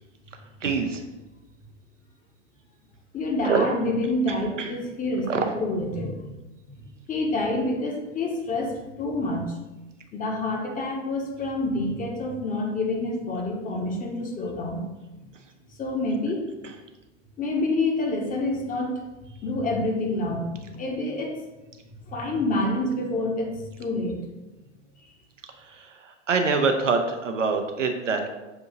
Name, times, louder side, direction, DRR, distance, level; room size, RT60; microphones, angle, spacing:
voice 1, 0.6-1.0 3.4-3.6 4.6-4.7 5.3-5.4 26.3-28.3, right 4 dB, 85° right, 5 dB, 0.6 m, -24 dB
voice 2, 3.1-6.2 6.7-9.5 10.1-14.8 15.8-16.4 17.4-19.0 19.4-21.3 22.1-24.2, left 2 dB, 20° left, 1 dB, 0.9 m, -27 dB
6.9 x 2.6 x 2.7 m, 1.1 s
figure-of-eight pair, 85°, 36 cm